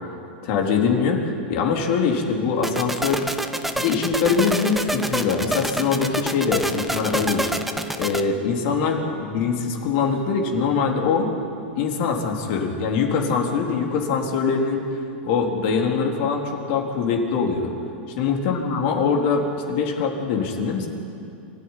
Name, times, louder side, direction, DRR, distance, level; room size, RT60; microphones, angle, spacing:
voice 1, 0.4-3.3 3.7-7.5 8.0-11.3 11.8-14.8 15.2-17.7 18.2-20.9, left 5 dB, 55° left, 1 dB, 3.6 m, -23 dB
sound 1, 2.6-8.2, right 1 dB, ahead, 1.1 m, -27 dB
26.0 x 14.0 x 9.9 m, 2.7 s
supercardioid pair, 135°, 6 cm